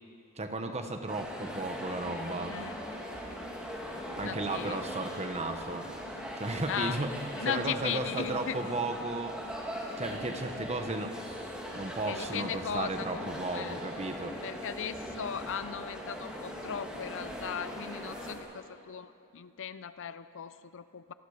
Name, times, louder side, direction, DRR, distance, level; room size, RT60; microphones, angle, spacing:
voice 1, 0.4-2.6 4.2-5.9 6.4-7.1 7.4-9.4 10.0-11.1 11.7-14.4, right 2 dB, 30° right, 6 dB, 1.4 m, -34 dB
sound 1, 1.1-18.3, equal, 5° right, 2.7 m, -40 dB
voice 2, 2.5-2.8 4.2-4.8 6.7-7.0 7.4-8.6 12.1-13.8 14.4-21.1, left 8 dB, 60° left, 13 dB, 0.6 m, -37 dB
27.5 x 18.5 x 5.1 m, 2.5 s
head